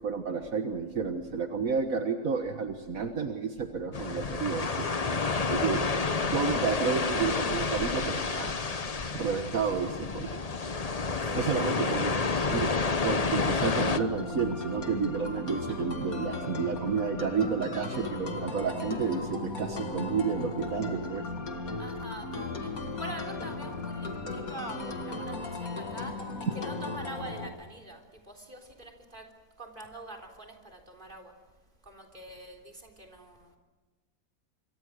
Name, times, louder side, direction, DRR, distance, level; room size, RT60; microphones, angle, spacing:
voice 1, 0.0-4.9 5.1-5.2 5.5-5.9 6.2-8.5 9.1-10.4 11.3-12.2 12.5-12.7 13.0-21.2, right 5 dB, 70° right, 5 dB, 1.8 m, -31 dB
sound 1, 3.9-14.0, left 4 dB, 30° left, 0.9 m, -29 dB
voice 2, 11.3-11.7 21.8-22.7 23.0-24.8 25.1-26.1 26.5-28.0 28.3-29.3 29.6-31.3 31.9-33.5, right 1 dB, 35° right, 1 dB, 3.8 m, -44 dB
sound 2, 13.8-27.5, left 3 dB, 70° left, 2.4 m, -36 dB
27.0 x 24.5 x 6.5 m, 1.3 s
omnidirectional pair, 1.5 m